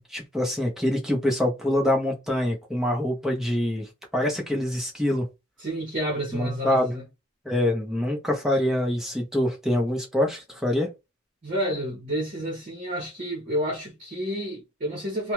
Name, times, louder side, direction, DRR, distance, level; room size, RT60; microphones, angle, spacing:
voice 1, 0.0-5.3 6.3-6.9 7.4-10.9, left 1 dB, ahead, 0.7 m, -25 dB
voice 2, 5.6-7.0 11.4-15.3, equal, 40° right, 0.9 m, -30 dB
2.4 x 2.2 x 3.0 m
head